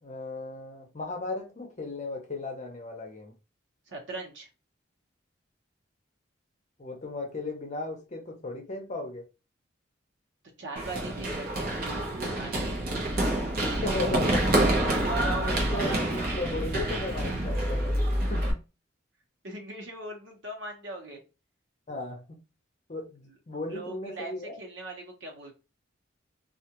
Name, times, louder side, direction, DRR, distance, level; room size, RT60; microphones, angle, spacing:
voice 1, 0.0-3.3 6.8-9.3 13.8-14.5 15.5-17.9 18.3-18.7 21.9-22.4 22.9-24.6, left 2 dB, 40° left, 0.7 m, -36 dB
voice 2, 3.9-4.5 10.6-12.7 13.7-14.4 14.7-16.0 19.4-21.2 23.7-25.5, right 2 dB, 80° right, 1.0 m, -39 dB
Run, 10.8-18.5, right 1 dB, 55° right, 0.8 m, -27 dB
2.4 x 2.3 x 2.9 m
head